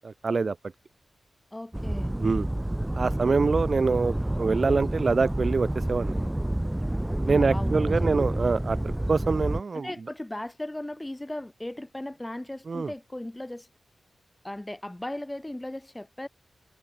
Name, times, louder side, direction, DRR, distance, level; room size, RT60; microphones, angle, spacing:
voice 1, 0.0-0.6 2.2-2.5 3.0-6.2 7.3-9.9 12.7-12.9, right 4 dB, 40° right, 0.9 m, -25 dB
voice 2, 1.5-2.1 7.2-8.2 9.8-13.7 14.4-16.3, left 1 dB, 10° left, 5.5 m, -37 dB
sound 1, 1.7-9.6, right 1 dB, 10° right, 0.6 m, -29 dB
wide cardioid pair, 125°, 0 cm